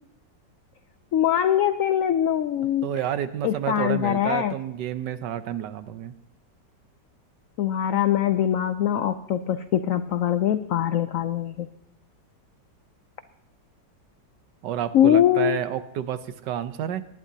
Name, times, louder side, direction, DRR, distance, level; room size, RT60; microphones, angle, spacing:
voice 1, 1.1-2.9 3.4-4.5 7.6-11.7 14.9-15.6, left 10 dB, 80° left, 10 dB, 0.7 m, -22 dB
voice 2, 2.8-6.1 14.6-17.0, right 10 dB, 75° right, 12 dB, 1.3 m, -30 dB
19.5 x 11.0 x 2.8 m, 0.85 s
omnidirectional pair, 2.0 m